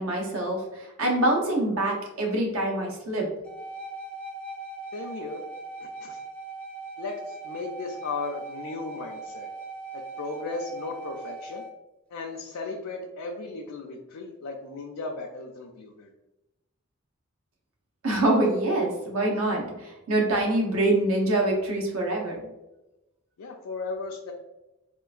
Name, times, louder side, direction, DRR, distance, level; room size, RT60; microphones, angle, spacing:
voice 1, 0.0-3.3 18.0-22.4, right 1 dB, 75° right, 0 dB, 0.8 m, -25 dB
sound 1, 3.4-11.7, right 3 dB, 5° left, 0.3 m, -40 dB
voice 2, 4.9-5.4 5.8-6.2 7.0-9.5 9.9-11.6 12.1-16.1 23.4-24.3, left 3 dB, 80° left, -1 dB, 0.4 m, -36 dB
3.7 x 2.5 x 2.3 m, 0.97 s
head